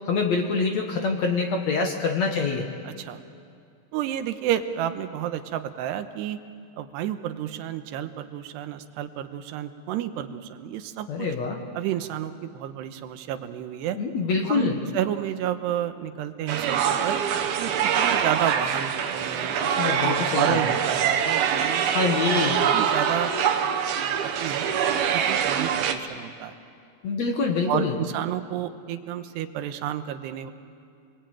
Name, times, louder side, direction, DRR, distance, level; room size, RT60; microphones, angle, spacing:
voice 1, 0.1-2.7 11.1-11.6 13.9-14.8 19.8-20.7 21.9-22.6 27.0-27.9, left 4 dB, 55° left, 3 dB, 2.1 m, -25 dB
voice 2, 2.8-3.2 3.9-6.4 6.7-11.3 11.7-14.0 14.5-17.2 17.6-22.0 22.3-23.3 23.6-23.7 24.0-24.7 25.1-26.5 27.7-30.5, right 11 dB, 90° right, 9 dB, 3.1 m, -31 dB
sound 1, 16.5-25.9, right 8 dB, 70° right, 3.0 m, -24 dB
28.0 x 21.5 x 8.9 m, 2.4 s
omnidirectional pair, 4.7 m